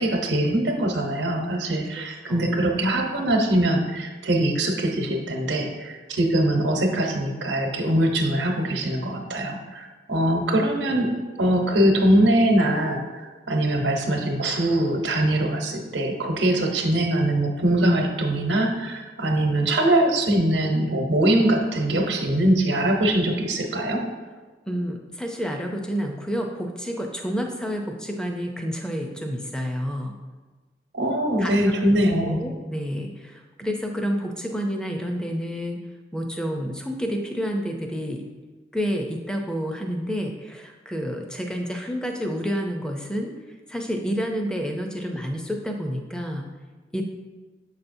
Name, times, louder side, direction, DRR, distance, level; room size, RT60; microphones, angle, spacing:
voice 1, 0.0-11.1 11.4-24.1 30.9-32.4, right 1 dB, 90° right, 2 dB, 1.0 m, -22 dB
voice 2, 24.7-30.1 31.4-31.7 32.2-35.8 36.1-38.2 38.7-43.3 43.7-46.5 46.9-47.0, equal, 5° left, 2 dB, 0.5 m, -29 dB
7.2 x 5.6 x 2.6 m, 1.3 s
head